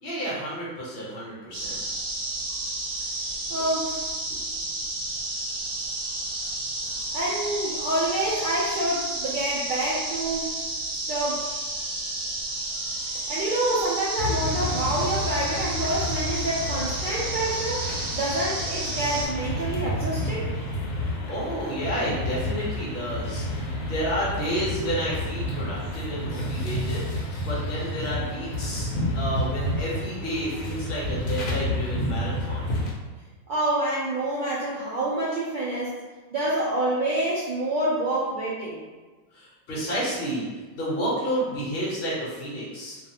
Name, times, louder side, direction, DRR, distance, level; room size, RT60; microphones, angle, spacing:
voice 1, 0.0-1.8 3.2-3.6 4.3-4.5 21.1-27.1 27.4-32.7 39.3-40.5 40.7-43.0, equal, 50° left, -7 dB, 1.0 m, -31 dB
sound 1, 1.5-19.3, right 2 dB, 65° right, 1.0 m, -31 dB
voice 2, 3.5-4.0 7.1-10.6 11.1-11.4 13.3-20.5 33.5-35.9 36.3-38.8, right 1 dB, 80° right, -8 dB, 0.4 m, -27 dB
sound 2, 14.2-32.9, left 1 dB, 75° left, 1.0 m, -30 dB
2.5 x 2.3 x 2.7 m, 1.3 s
omnidirectional pair, 1.5 m